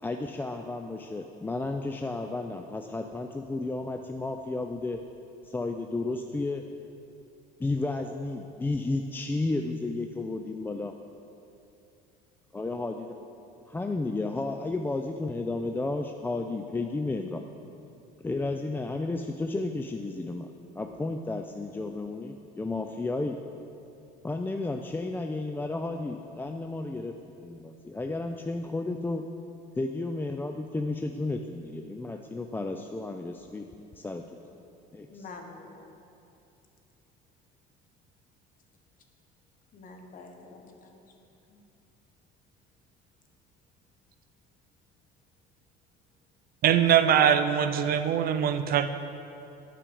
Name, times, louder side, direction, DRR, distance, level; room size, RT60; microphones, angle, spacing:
voice 1, 0.0-5.0 5.4-6.6 7.6-10.9 12.5-13.2 13.7-17.4 18.2-20.5 20.8-23.4 24.2-27.2 27.4-29.2 29.8-33.7 34.0-34.2 34.9-35.2, left 2 dB, 10° left, 4 dB, 0.3 m, -32 dB
voice 2, 35.1-35.9 39.7-41.0 41.5-41.6, left 3 dB, 45° left, 3 dB, 1.2 m, -47 dB
voice 3, 46.6-48.9, right 9 dB, 50° right, 10 dB, 0.5 m, -22 dB
8.8 x 5.0 x 6.9 m, 2.7 s
supercardioid pair, 100°, 20 cm